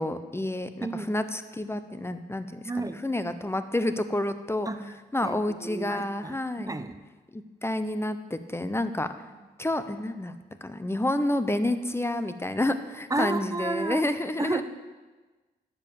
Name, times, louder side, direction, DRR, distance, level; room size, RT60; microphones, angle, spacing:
voice 1, 0.0-6.8 7.3-9.1 9.6-10.3 10.6-14.6, left 1 dB, 15° left, 10 dB, 1.0 m, -29 dB
voice 2, 2.7-3.0 4.7-4.8 5.2-5.3 5.6-6.4 6.7-6.9 13.1-14.1 14.4-14.6, right 2 dB, 15° right, 9 dB, 1.0 m, -31 dB
10.5 x 7.2 x 7.2 m, 1.3 s
supercardioid pair, 50°, 20 cm